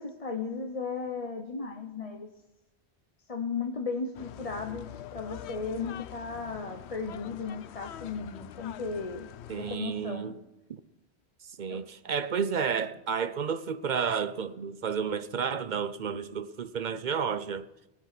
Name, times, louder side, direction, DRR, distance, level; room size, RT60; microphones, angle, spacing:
voice 1, 0.0-2.3 3.3-9.3 9.5-10.3 11.7-11.8, left 4 dB, 35° left, 0.9 m, -35 dB
sound 1, 4.1-9.8, left 11 dB, 80° left, 0.8 m, -45 dB
voice 2, 9.5-10.3 10.7-10.8 11.6-17.7, right 6 dB, 50° right, 0.7 m, -31 dB
19.0 x 7.3 x 5.9 m
omnidirectional pair, 1.1 m